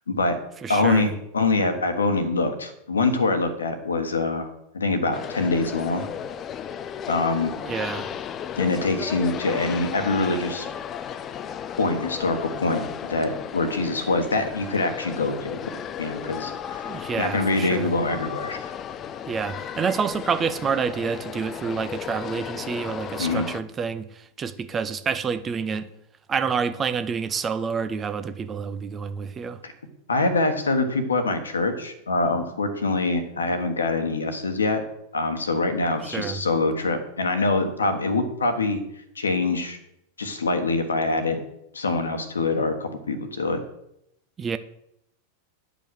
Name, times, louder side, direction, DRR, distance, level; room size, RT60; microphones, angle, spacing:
voice 1, 0.1-0.4 0.7-4.5 4.7-6.1 7.1-7.6 8.6-10.7 11.8-15.7 16.0-16.9 17.2-18.7 23.2-23.5 29.6-29.7 30.1-34.8 35.1-38.8 39.1-39.8 40.2-41.4 41.7-43.6, left 3 dB, 75° left, 8 dB, 1.3 m, -24 dB
voice 2, 0.6-1.1 7.6-8.1 16.8-17.9 19.3-25.9 26.3-29.6 36.0-36.4 44.4-44.6, right 6 dB, 20° right, 11 dB, 0.6 m, -28 dB
sound 1, 5.1-23.6, left 8 dB, 30° left, 0.4 m, -34 dB
10.0 x 5.2 x 6.3 m, 0.78 s
figure-of-eight pair, 90°, 0 cm